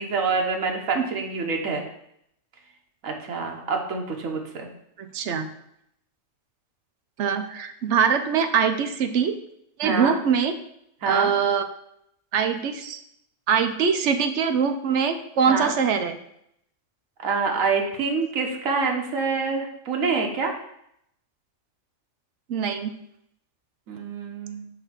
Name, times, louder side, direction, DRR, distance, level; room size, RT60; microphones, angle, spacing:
voice 1, 0.0-1.8 3.0-4.7 9.8-10.2 11.0-11.3 15.5-15.7 17.2-20.5 23.9-24.7, right 4 dB, 85° right, 1 dB, 1.3 m, -26 dB
voice 2, 5.0-5.5 7.2-9.3 9.8-10.5 11.0-11.7 12.3-13.0 13.5-16.2 22.5-23.0, right 6 dB, 65° right, 7 dB, 0.9 m, -23 dB
6.6 x 3.4 x 6.1 m, 0.74 s
omnidirectional pair, 1.4 m